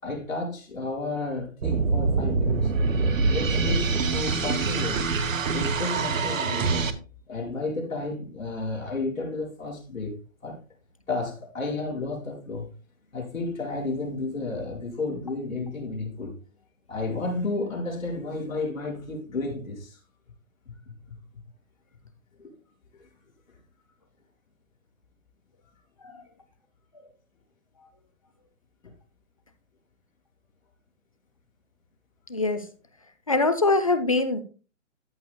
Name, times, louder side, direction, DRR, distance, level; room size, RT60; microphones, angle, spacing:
voice 1, 0.0-2.7 3.3-5.0 5.5-6.9 7.3-10.6 11.1-12.7 13.1-16.4 16.9-20.0 22.4-22.5 28.8-28.9, left 3 dB, 80° left, 4.9 m, -32 dB
sound 1, 1.6-6.9, right 4 dB, 80° right, 1.2 m, -25 dB
voice 2, 32.3-32.6 33.3-34.4, left 3 dB, 25° left, 0.5 m, -23 dB
13.5 x 6.4 x 2.2 m
hypercardioid pair, 165°, 39 cm